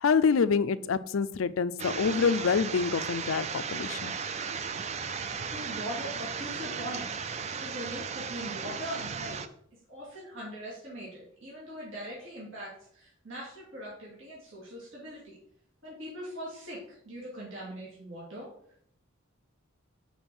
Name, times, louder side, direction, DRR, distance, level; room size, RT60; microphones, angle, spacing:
voice 1, 0.0-4.2, left 5 dB, 75° left, 14 dB, 0.4 m, -26 dB
sound 1, 1.8-9.5, right 6 dB, 35° right, 0.4 m, -36 dB
voice 2, 5.5-7.1 7.6-9.4 9.9-15.4 15.8-18.5, equal, 65° right, -6 dB, 2.3 m, -41 dB
5.5 x 4.8 x 6.0 m, 0.66 s
head